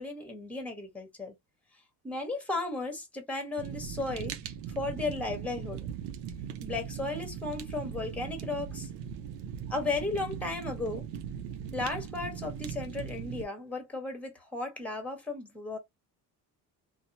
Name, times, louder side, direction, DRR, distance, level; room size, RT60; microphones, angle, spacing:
voice 1, 0.0-1.3 2.0-5.8 6.6-8.9 9.7-11.0 11.7-15.8, left 3 dB, 5° left, 1.3 m, -35 dB
Fire, 3.6-13.4, right 8 dB, 90° right, 0.6 m, -39 dB
2.7 x 2.2 x 2.6 m
supercardioid pair, 85°, 43 cm